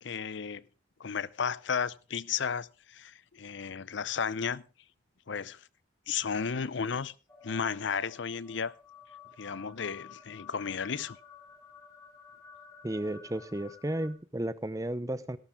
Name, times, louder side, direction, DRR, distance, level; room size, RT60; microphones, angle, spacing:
voice 1, 0.0-0.6 1.0-4.6 5.3-5.6 6.1-7.1 7.4-8.7 9.4-11.2, left 6 dB, 65° left, 0.6 m, -33 dB
sound 1, 7.3-14.1, left 6 dB, 15° left, 4.0 m, -52 dB
voice 2, 12.8-15.4, right 1 dB, 15° right, 0.7 m, -33 dB
17.5 x 12.0 x 3.6 m
head